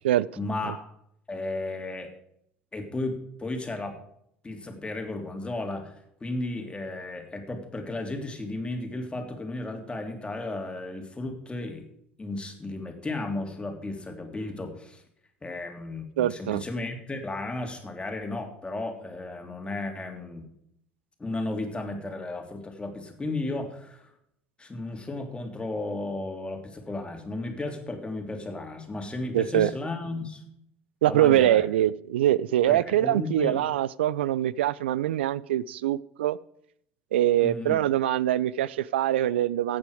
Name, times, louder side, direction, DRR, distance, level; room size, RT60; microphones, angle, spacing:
voice 1, 0.4-0.8 1.3-2.1 2.7-4.0 4.4-11.9 12.2-15.0 15.4-20.5 21.2-24.1 24.6-30.4 31.0-31.6 32.7-33.6 37.4-37.8, left 2 dB, 15° left, 4 dB, 3.1 m, -34 dB
voice 2, 16.2-16.6 29.3-29.7 31.0-36.4 37.1-39.8, right 13 dB, 80° right, 22 dB, 0.5 m, -23 dB
14.5 x 8.9 x 5.0 m, 0.72 s
hypercardioid pair, 70°, 6 cm